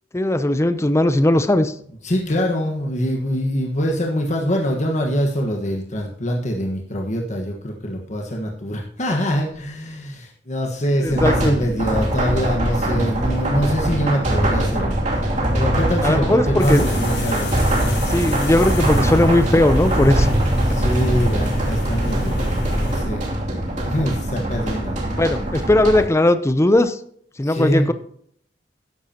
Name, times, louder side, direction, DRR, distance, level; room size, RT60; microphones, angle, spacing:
voice 1, 0.1-1.7 11.0-11.5 16.0-16.9 18.1-20.3 25.2-27.0 27.4-27.9, left 1 dB, 15° left, 11 dB, 0.6 m, -18 dB
voice 2, 2.0-17.6 20.6-23.3 23.9-25.0 27.4-27.9, equal, 45° left, 0 dB, 1.4 m, -24 dB
sound 1, 11.1-26.0, right 1 dB, 45° right, 2.7 m, -22 dB
sound 2, 16.6-23.0, equal, 75° left, 5.2 m, -26 dB
12.5 x 11.0 x 2.9 m, 0.62 s
head